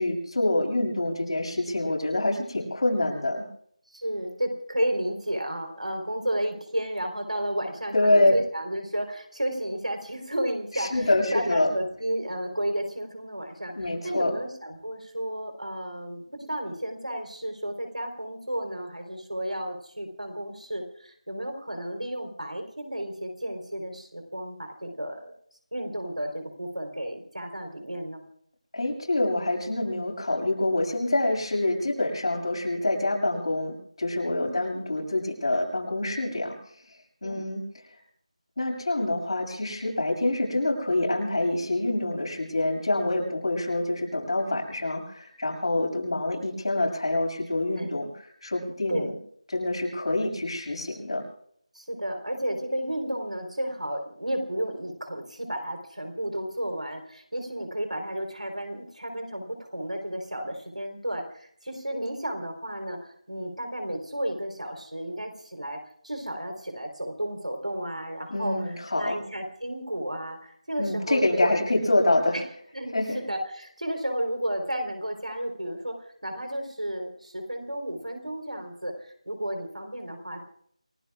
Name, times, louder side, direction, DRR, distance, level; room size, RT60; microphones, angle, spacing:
voice 1, 0.0-3.4 7.9-8.3 10.7-11.7 13.7-14.3 28.7-36.5 37.2-37.6 38.6-49.1 49.5-51.2 68.3-69.2 70.8-72.4 72.9-73.2, left 2 dB, 50° left, 0 dB, 6.8 m, -26 dB
voice 2, 3.9-25.3 25.7-28.2 34.3-34.6 37.2-37.4 47.8-48.0 48.9-49.1 51.7-63.0 63.3-71.6 72.3-72.4 72.7-80.4, right 1 dB, 85° right, 5 dB, 4.1 m, -32 dB
29.0 x 18.0 x 2.5 m, 0.65 s
figure-of-eight pair, 165°, 4 cm